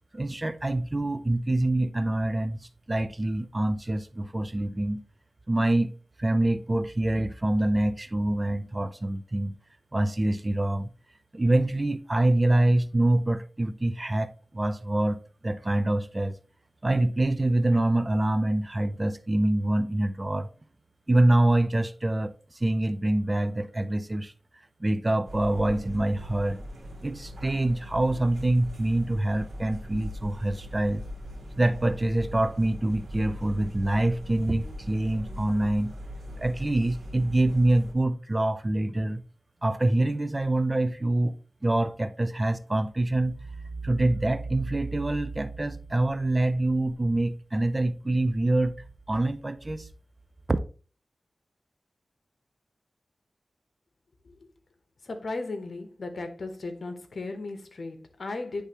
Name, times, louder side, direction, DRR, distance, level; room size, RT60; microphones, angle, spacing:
voice 1, 0.1-2.6 2.9-5.0 5.5-9.5 9.9-10.9 11.3-16.4 16.8-20.5 21.1-24.3 24.8-26.6 27.0-31.0 31.6-35.9 36.4-39.2 39.6-41.4 41.6-43.4 43.8-48.7 49.1-49.9 50.5-50.6, right 1 dB, 25° right, 0.4 m, -25 dB
sound 1, 25.3-37.9, equal, 80° right, 1.7 m, -40 dB
voice 2, 55.0-58.7, left 3 dB, 65° left, 1.0 m, -36 dB
9.7 x 3.4 x 2.9 m
wide cardioid pair, 100°, 0 cm